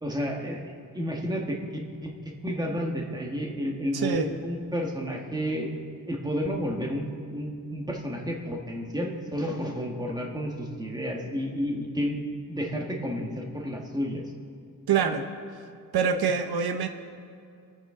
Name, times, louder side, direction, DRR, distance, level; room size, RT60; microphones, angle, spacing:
voice 1, 0.0-2.1 2.4-5.7 6.1-12.2 12.5-14.2, equal, 10° right, 0 dB, 1.5 m, -31 dB
voice 2, 3.9-4.3 14.9-15.3 15.9-16.9, right 6 dB, 80° right, 7 dB, 0.9 m, -25 dB
25.5 x 9.2 x 3.8 m, 2.4 s
wide cardioid pair, 165°, 37 cm